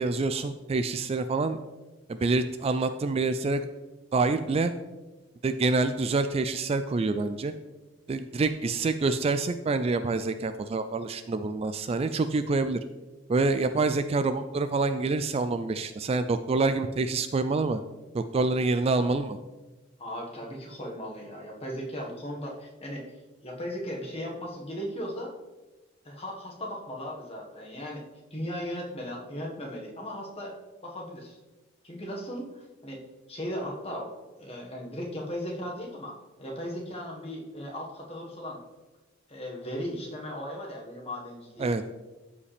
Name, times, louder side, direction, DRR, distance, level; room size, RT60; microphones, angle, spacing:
voice 1, 0.0-1.6 2.1-3.6 4.1-4.7 5.4-7.5 8.1-12.8 13.3-17.8 18.1-19.4 41.6-41.8, right 3 dB, 30° right, 11 dB, 0.3 m, -26 dB
voice 2, 20.0-23.1 23.4-25.3 26.0-28.0 28.3-30.6 30.8-31.4 31.8-33.0 33.3-34.1 34.4-38.6 39.3-41.8, equal, 30° left, -1 dB, 1.5 m, -37 dB
13.0 x 5.1 x 3.4 m, 1.1 s
head